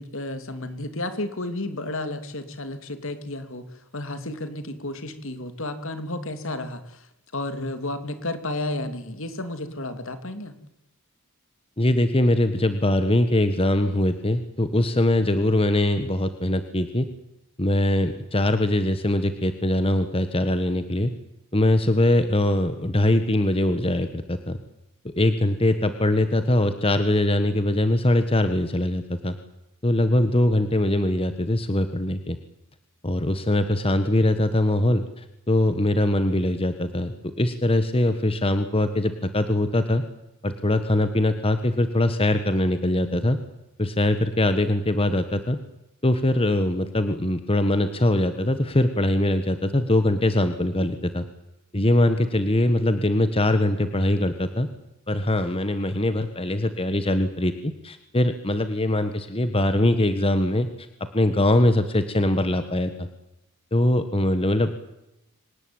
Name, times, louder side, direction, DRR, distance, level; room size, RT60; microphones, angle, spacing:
voice 1, 0.0-3.7 3.9-7.1 7.3-10.6, left 2 dB, 65° left, 9 dB, 3.1 m, -32 dB
voice 2, 11.8-17.1 17.6-21.1 21.5-24.6 25.1-29.4 29.8-32.4 33.0-40.0 40.4-43.4 43.8-45.6 46.0-51.3 51.7-54.7 55.1-60.9 61.1-63.1 63.7-64.7, left 1 dB, 25° left, 9 dB, 1.5 m, -22 dB
25.0 x 19.0 x 8.9 m, 0.87 s
head